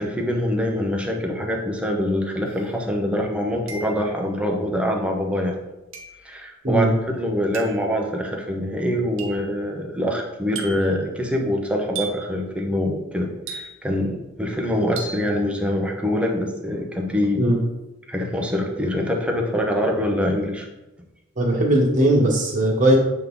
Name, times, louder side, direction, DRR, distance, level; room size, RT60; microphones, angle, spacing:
voice 1, 0.0-5.6 6.2-17.5 18.1-20.7, equal, 5° right, 0 dB, 0.8 m, -24 dB
sound 1, 2.5-2.6 3.7-4.2 5.9-6.3 7.5-7.9 9.2-9.5 10.6-11.0 12.0-12.4 13.5-14.0 15.0-15.3, right 5 dB, 70° right, 1.0 m, -36 dB
voice 2, 21.4-23.0, right 1 dB, 40° right, -2 dB, 1.5 m, -18 dB
7.5 x 3.6 x 3.8 m, 1.0 s
head